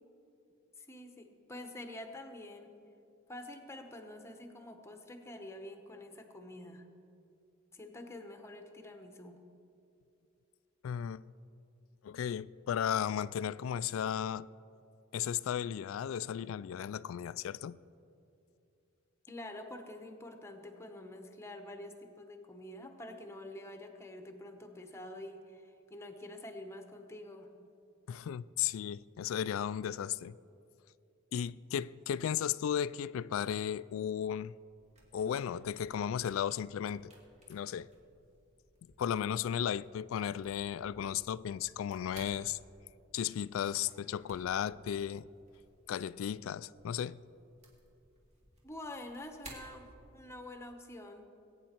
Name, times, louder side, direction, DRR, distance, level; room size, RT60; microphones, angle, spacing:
voice 1, 0.8-2.7 3.3-6.9 7.7-9.4 19.3-27.5 48.6-49.9 50.1-51.2, left 1 dB, 15° left, 1.0 m, -47 dB
voice 2, 10.8-11.2 12.0-14.5 15.1-17.8 28.1-30.3 31.3-34.5 35.1-37.1 37.5-37.9 39.0-42.6 43.1-45.3 45.9-47.2, left 9 dB, 75° left, 0.3 m, -35 dB
sound 1, 34.7-50.5, right 1 dB, 35° right, 2.6 m, -59 dB
21.0 x 9.1 x 4.4 m
head